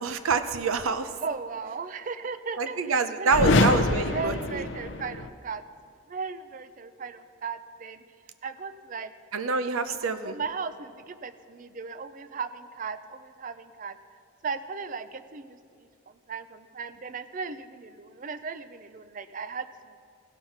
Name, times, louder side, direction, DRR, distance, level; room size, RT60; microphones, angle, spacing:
voice 1, 0.0-1.1 2.6-4.6 9.3-10.3, right 4 dB, 90° right, 10 dB, 0.6 m, -26 dB
voice 2, 1.2-3.6 4.1-5.6 6.1-8.0 8.4-9.1 9.9-14.0 14.4-15.6 16.3-20.0, right 5 dB, 40° right, 12 dB, 0.4 m, -36 dB
sound 1, 3.3-5.3, left 2 dB, 60° left, 0.6 m, -24 dB
15.5 x 5.6 x 5.7 m, 2.2 s
head